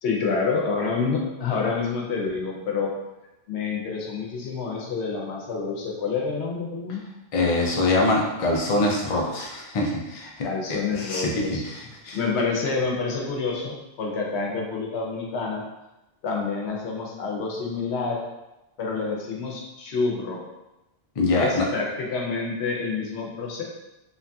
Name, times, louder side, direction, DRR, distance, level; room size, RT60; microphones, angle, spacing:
voice 1, 0.0-2.9 3.5-7.0 10.4-11.6 12.1-15.6 16.2-18.2 18.8-20.4 21.3-23.6, left 4 dB, 90° left, -1 dB, 0.9 m, -28 dB
voice 2, 7.3-12.2 21.2-21.7, left 2 dB, 45° left, -2 dB, 0.5 m, -24 dB
2.9 x 2.6 x 2.2 m, 0.98 s
omnidirectional pair, 1.1 m